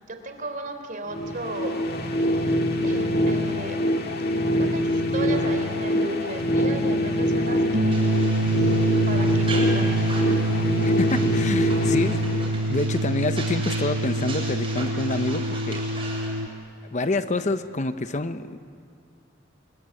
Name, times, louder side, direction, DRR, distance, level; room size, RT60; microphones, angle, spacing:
voice 1, 0.1-3.8 4.6-8.0 8.4-10.1, right 2 dB, 45° right, 6 dB, 3.5 m, -35 dB
sound 1, 1.1-13.0, left 1 dB, 55° left, 1.9 m, -24 dB
sound 2, 7.7-16.5, right 2 dB, 60° right, 1.2 m, -26 dB
sound 3, 7.9-16.4, right 2 dB, 30° right, 7.2 m, -38 dB
voice 2, 10.8-12.4 12.7-15.8 16.9-18.6, left 2 dB, 40° left, 10 dB, 0.8 m, -27 dB
27.0 x 22.5 x 9.7 m, 2.3 s
head